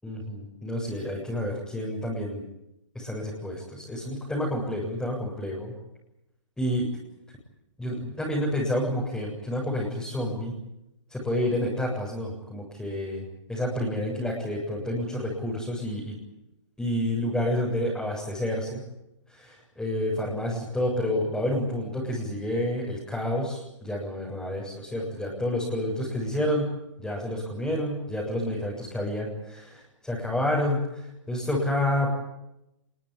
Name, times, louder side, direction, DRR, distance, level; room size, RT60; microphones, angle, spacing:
voice 1, 0.0-2.4 2.9-5.7 6.6-6.9 7.8-10.5 11.1-13.2 13.5-16.2 16.8-18.8 19.3-26.7 27.0-30.8 31.3-32.1, left 1 dB, 5° left, -5 dB, 7.7 m, -29 dB
24.5 x 23.5 x 10.0 m, 0.87 s
hypercardioid pair, 140°, 16 cm